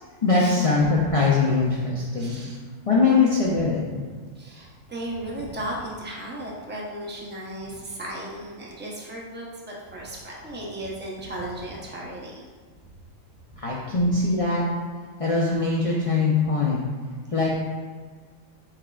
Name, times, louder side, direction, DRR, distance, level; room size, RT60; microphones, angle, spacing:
voice 1, 0.2-2.3 2.9-4.0 13.6-14.6 15.2-16.8 17.3-17.5, left 3 dB, 60° left, -4 dB, 0.3 m, -22 dB
voice 2, 2.2-2.6 4.4-12.4, right 1 dB, 15° right, -3 dB, 0.4 m, -35 dB
4.8 x 4.4 x 2.3 m, 1.5 s
omnidirectional pair, 1.4 m